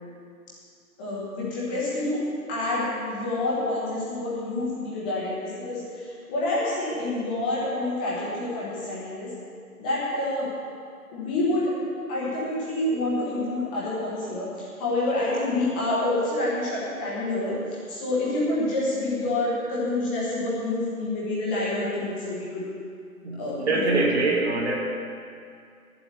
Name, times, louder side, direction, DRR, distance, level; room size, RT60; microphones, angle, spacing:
voice 1, 1.0-9.3 9.8-10.5 11.1-11.7 12.1-22.6 23.4-24.0 24.3-24.4, left 2 dB, 5° left, -7 dB, 1.0 m, -28 dB
voice 2, 23.2-24.8, right 3 dB, 45° right, -2 dB, 2.5 m, -24 dB
9.9 x 7.7 x 9.6 m, 2.3 s
figure-of-eight pair, 160°, 45 cm